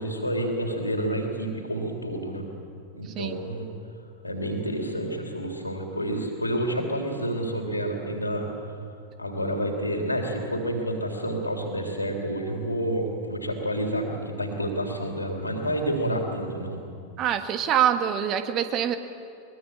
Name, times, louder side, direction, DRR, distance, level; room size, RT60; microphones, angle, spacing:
voice 1, 0.0-2.4 2.9-3.7 4.2-8.5 9.2-16.8, right 1 dB, 85° left, 2 dB, 3.7 m, -29 dB
voice 2, 17.2-19.0, right 9 dB, 35° right, 9 dB, 1.6 m, -25 dB
22.5 x 21.0 x 8.7 m, 2.5 s
figure-of-eight pair, 90°, 0 cm